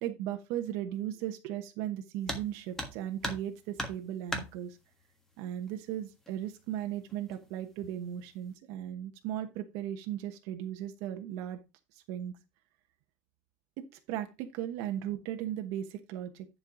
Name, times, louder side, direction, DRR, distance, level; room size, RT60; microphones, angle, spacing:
voice 1, 0.0-4.8 5.4-11.6 11.9-12.3 13.8-16.5, right 11 dB, 65° right, 6 dB, 1.1 m, -37 dB
sound 1, 2.2-2.5 2.8-3.5 3.8-4.5 5.7-5.8 6.3-6.4 7.1-7.5 7.8-8.2, left 1 dB, 5° left, 1.5 m, -37 dB
10.5 x 4.7 x 4.9 m, 0.26 s
cardioid pair, 170°, 6 cm